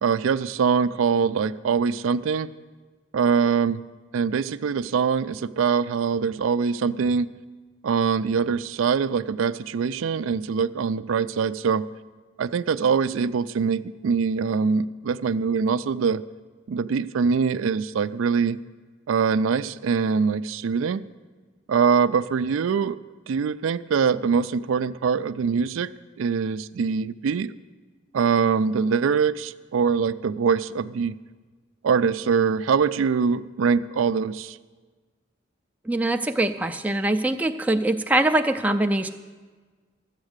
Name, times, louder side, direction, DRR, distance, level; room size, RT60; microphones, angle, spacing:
voice 1, 0.0-2.5 3.1-3.8 4.1-7.3 7.8-11.9 12.4-16.2 16.7-18.6 19.1-21.0 21.7-23.0 23.3-25.9 26.2-27.5 28.1-31.1 31.8-34.6, right 6 dB, 85° right, 14 dB, 0.4 m, -23 dB
voice 2, 35.9-39.1, right 1 dB, 10° right, 6 dB, 0.3 m, -23 dB
13.0 x 8.2 x 6.5 m, 1.4 s
head